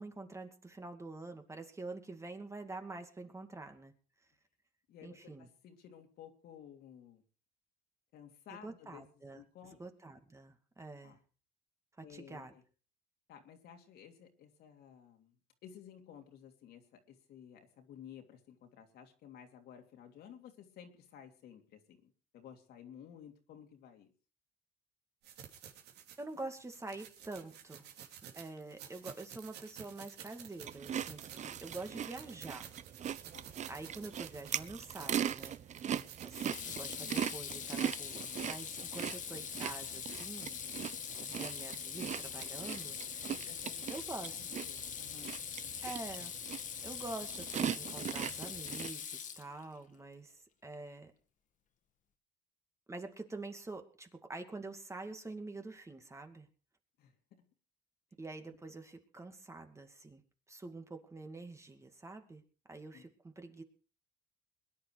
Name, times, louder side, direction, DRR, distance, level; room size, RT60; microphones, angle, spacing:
voice 1, 0.0-3.9 5.0-5.5 8.5-9.4 9.8-11.2 12.0-12.6 26.2-27.9 28.3-32.7 33.7-35.8 36.2-40.6 41.2-43.3 43.9-44.4 45.8-46.3 46.8-51.1 52.9-56.5 58.2-60.2 60.5-62.4 62.7-63.6, right 2 dB, 15° right, 5 dB, 2.3 m, -46 dB
voice 2, 4.9-7.2 8.1-9.0 9.3-9.8 11.0-11.2 12.0-12.6 13.3-15.3 15.6-24.1 33.3-33.5 43.3-45.4 57.0-57.4 58.5-58.6 62.9-63.0, left 8 dB, 70° left, 4 dB, 3.1 m, -55 dB
sound 1, 25.2-36.8, right 9 dB, 80° right, 3.0 m, -52 dB
Eating Chips, 30.6-48.9, right 9 dB, 45° right, 0.8 m, -40 dB
Water tap faucet / Sink (filling or washing), 34.7-35.0 36.3-49.8, left 8 dB, 50° left, 1.8 m, -43 dB
22.0 x 10.5 x 4.9 m, 0.38 s
cardioid pair, 110°, 17 cm